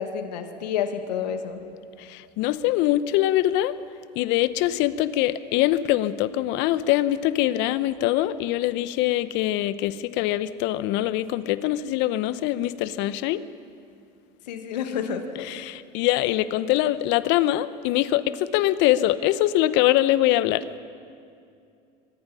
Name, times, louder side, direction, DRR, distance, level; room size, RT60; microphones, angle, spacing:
voice 1, 0.0-1.6 14.5-15.5, left 7 dB, 80° left, 7 dB, 2.0 m, -29 dB
voice 2, 2.0-3.7 4.1-13.4 15.5-20.6, left 14 dB, 60° left, 15 dB, 1.0 m, -23 dB
24.5 x 19.5 x 5.7 m, 2.4 s
hypercardioid pair, 85°, 21 cm